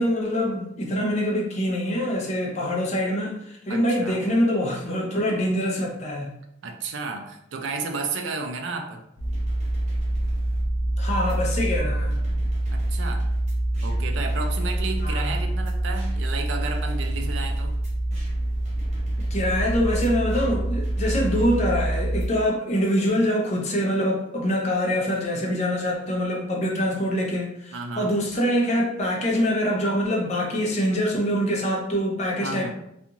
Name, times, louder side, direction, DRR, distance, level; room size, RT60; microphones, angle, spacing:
voice 1, 0.0-6.3 11.0-12.2 15.0-15.4 19.3-32.7, equal, 35° left, -1 dB, 0.6 m, -24 dB
voice 2, 3.7-4.2 6.6-9.0 12.7-13.3 13.8-17.8 27.7-28.1 32.4-32.7, right 4 dB, 80° right, 4 dB, 0.4 m, -32 dB
sound 1, 9.2-22.3, right 1 dB, 35° right, 0.7 m, -26 dB
2.4 x 2.4 x 2.8 m, 0.79 s
head